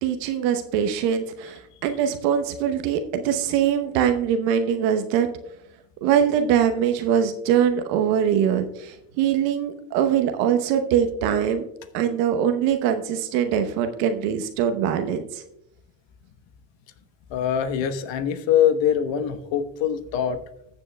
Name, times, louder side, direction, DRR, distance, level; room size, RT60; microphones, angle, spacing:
voice 1, 0.0-5.3 6.0-11.7 11.9-15.4, right 8 dB, 85° right, 7 dB, 1.0 m, -22 dB
voice 2, 17.3-20.4, left 9 dB, 65° left, 9 dB, 1.2 m, -23 dB
20.0 x 7.2 x 2.2 m, 0.82 s
hypercardioid pair, 60°, 47 cm